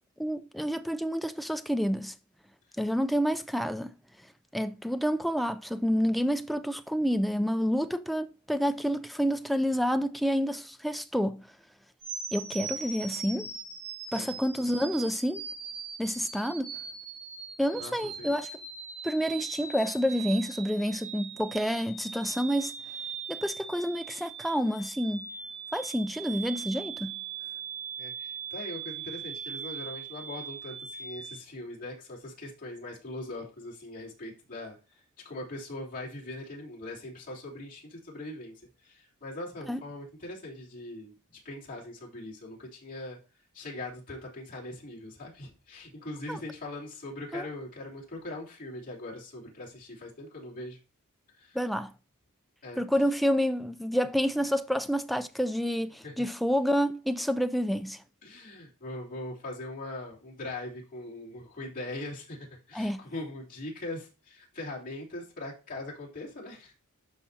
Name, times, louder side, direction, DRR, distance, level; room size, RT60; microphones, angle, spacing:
voice 1, 0.2-2.1 2.8-3.9 4.5-11.5 12.3-13.5 14.1-15.4 16.0-16.8 17.6-18.5 19.0-22.7 23.3-25.2 25.7-27.2 39.7-39.8 46.3-46.4 47.3-47.5 51.5-51.9 52.8-58.0 62.7-63.0, equal, ahead, 0.3 m, -29 dB
sound 1, 12.0-31.4, right 6 dB, 90° right, 3.7 m, -40 dB
voice 2, 17.8-18.3 28.0-38.5 38.8-43.2 43.5-50.8 51.4-51.6 52.6-52.8 56.0-56.3 58.2-66.7, left 2 dB, 40° left, 3.1 m, -41 dB
12.5 x 4.9 x 2.7 m
head